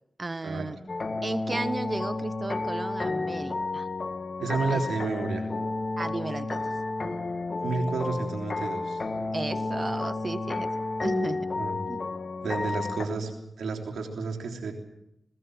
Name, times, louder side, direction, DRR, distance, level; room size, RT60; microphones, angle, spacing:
voice 1, 0.2-0.8 1.2-3.9 4.7-4.8 6.0-6.6 9.3-10.7 11.0-11.4 11.9-12.0, right 3 dB, 40° right, 16 dB, 0.8 m, -34 dB
sound 1, 0.9-13.1, left 3 dB, 60° left, 1.8 m, -31 dB
voice 2, 4.4-5.5 7.6-9.0 11.6-11.8 12.4-13.3 13.6-14.7, right 4 dB, 90° right, 3 dB, 3.4 m, -30 dB
20.0 x 18.5 x 7.8 m, 0.84 s
cardioid pair, 45°, 0 cm